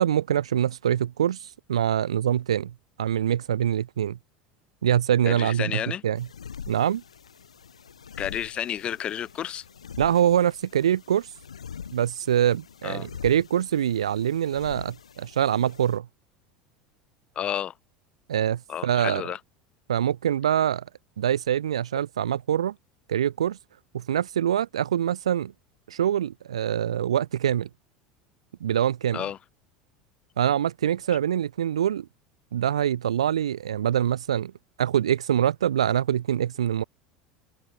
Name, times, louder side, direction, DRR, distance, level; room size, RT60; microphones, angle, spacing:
voice 1, 0.0-2.7 3.0-4.2 4.8-5.7 6.0-6.3 6.7-7.0 10.0-11.3 11.9-16.1 18.3-19.2 19.9-20.8 21.2-22.7 23.1-23.6 23.9-25.5 25.9-27.7 28.6-29.2 30.4-32.1 32.5-34.5 34.8-36.8, right 10 dB, 70° right, 0.4 m, -24 dB
voice 2, 5.3-6.0 8.2-9.6 12.8-13.1 17.3-17.7 18.7-19.4 29.1-29.4, left 10 dB, 35° left, 1.3 m, -31 dB
sound 1, 6.2-16.0, left 7 dB, 75° left, 0.7 m, -44 dB
open air
figure-of-eight pair, 75°, 3 cm